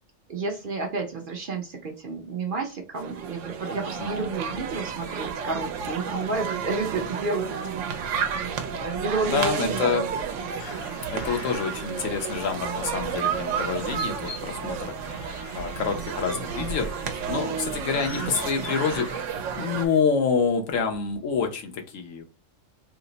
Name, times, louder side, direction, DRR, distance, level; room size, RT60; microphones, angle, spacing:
voice 1, 0.3-7.5 8.8-9.9, right 3 dB, 50° right, 2 dB, 0.7 m, -30 dB
sound 1, 2.9-19.9, right 6 dB, 80° right, 0.9 m, -31 dB
voice 2, 4.0-4.3 9.2-10.1 11.1-14.9 15.5-16.9 17.3-19.1 19.6-22.2, left 5 dB, 85° left, 3 dB, 1.1 m, -27 dB
sound 2, 10.6-20.0, left 5 dB, 60° left, 0.9 m, -44 dB
3.2 x 2.0 x 3.8 m, 0.31 s
omnidirectional pair, 1.3 m